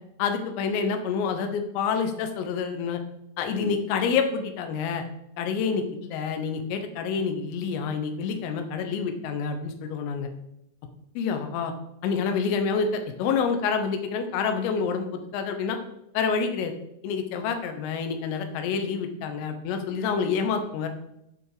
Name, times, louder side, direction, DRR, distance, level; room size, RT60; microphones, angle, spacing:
voice 1, 0.2-3.0 3.4-5.0 5.4-10.3 11.2-11.7 12.0-12.9 13.2-15.8 16.2-16.7 17.0-20.9, left 6 dB, 85° left, 6 dB, 3.7 m, -27 dB
14.5 x 5.1 x 5.0 m, 0.80 s
omnidirectional pair, 5.8 m